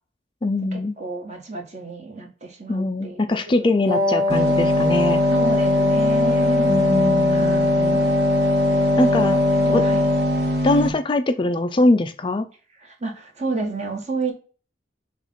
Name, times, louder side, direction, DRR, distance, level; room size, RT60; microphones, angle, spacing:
voice 1, 0.4-1.0 2.7-5.2 6.6-8.1 9.0-9.4 9.7-9.9 10.6-12.5, left 2 dB, 25° left, 9 dB, 0.4 m, -22 dB
voice 2, 1.0-3.7 5.3-6.9 7.3-8.1 8.7-8.8 9.2-10.0 12.8-14.3, right 3 dB, 40° right, 2 dB, 1.7 m, -31 dB
Wind instrument woodwind instrument, 3.9-10.6, left 3 dB, 25° right, 1.0 m, -21 dB
sound 1, 4.3-10.9, right 1 dB, 65° right, 1.5 m, -23 dB
7.1 x 2.5 x 5.5 m, 0.38 s
head